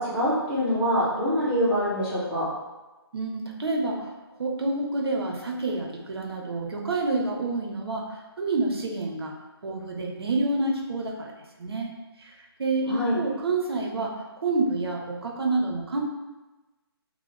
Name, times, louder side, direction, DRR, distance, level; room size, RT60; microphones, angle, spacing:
voice 1, 0.0-2.5 12.9-13.2, equal, 5° right, -16 dB, 1.3 m, -25 dB
voice 2, 3.1-8.0 8.4-9.3 9.6-11.3 11.6-11.9 12.6-14.1 14.4-16.0, right 2 dB, 70° right, 1 dB, 0.7 m, -28 dB
3.0 x 2.0 x 3.3 m, 1.1 s
figure-of-eight pair, 155°, 14 cm